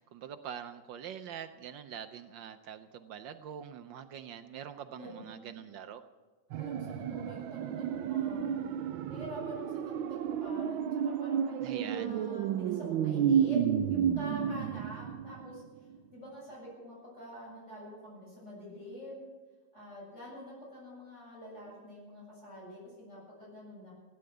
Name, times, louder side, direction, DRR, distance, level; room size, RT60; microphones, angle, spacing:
voice 1, 0.0-6.0 11.6-12.2, right 8 dB, 75° right, 9 dB, 1.4 m, -44 dB
sound 1, 6.5-15.6 15.9-16.0, right 8 dB, 90° right, 1.5 m, -31 dB
voice 2, 6.6-8.7 9.1-13.6 13.9-15.6 16.1-19.3 19.7-23.9, equal, 35° left, -4 dB, 8.0 m, -46 dB
17.0 x 10.5 x 7.9 m, 1.3 s
omnidirectional pair, 2.1 m